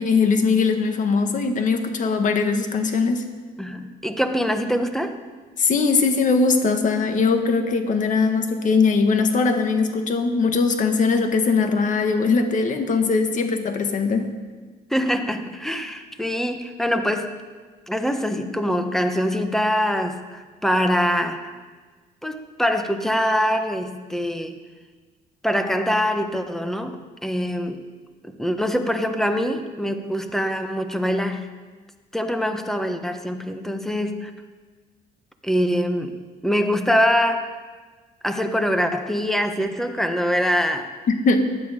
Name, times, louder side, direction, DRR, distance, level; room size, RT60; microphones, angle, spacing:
voice 1, 0.0-3.2 5.6-14.2 41.2-41.4, left 4 dB, 50° left, 6 dB, 1.6 m, -20 dB
voice 2, 3.6-5.2 14.9-17.4 17.9-21.6 22.2-24.6 25.4-27.8 28.2-31.5 32.1-34.3 35.4-36.1 36.4-37.6 38.2-40.9, equal, ahead, 7 dB, 1.2 m, -24 dB
15.5 x 10.0 x 5.2 m, 1.4 s
cardioid pair, 110°, 17 cm